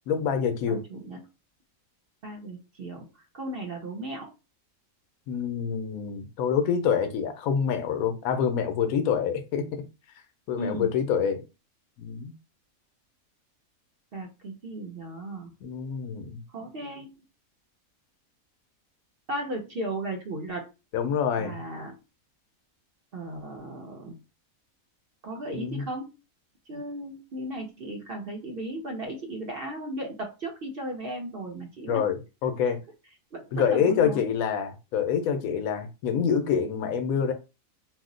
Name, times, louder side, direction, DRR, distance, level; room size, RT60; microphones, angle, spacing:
voice 1, 0.1-0.8 5.3-9.6 10.5-11.4 12.0-12.3 15.6-16.4 20.9-21.6 25.5-25.8 31.9-32.8 33.5-37.3, left 7 dB, 80° left, 1.0 m, -26 dB
voice 2, 0.7-1.2 2.2-3.1 3.3-4.3 10.6-10.9 14.1-15.5 16.5-17.1 19.3-20.7 21.4-21.9 23.1-24.2 25.2-26.1 26.7-32.0 33.3-34.3, right 1 dB, 55° right, 0.7 m, -36 dB
2.6 x 2.1 x 3.7 m
omnidirectional pair, 1.5 m